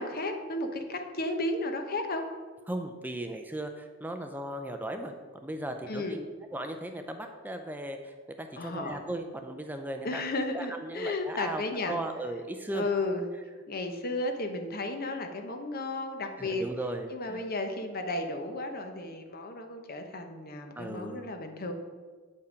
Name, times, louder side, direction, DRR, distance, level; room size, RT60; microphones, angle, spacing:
voice 1, 0.0-2.2 5.9-6.2 8.5-9.0 10.0-12.0 12.7-13.2 13.7-16.7 17.1-21.7, left 2 dB, 50° left, 5 dB, 0.8 m, -33 dB
voice 2, 2.7-6.2 6.5-10.2 10.5-12.9 16.4-17.4 20.8-21.2, right 1 dB, 10° right, 5 dB, 0.4 m, -37 dB
8.1 x 5.5 x 5.1 m, 1.5 s
head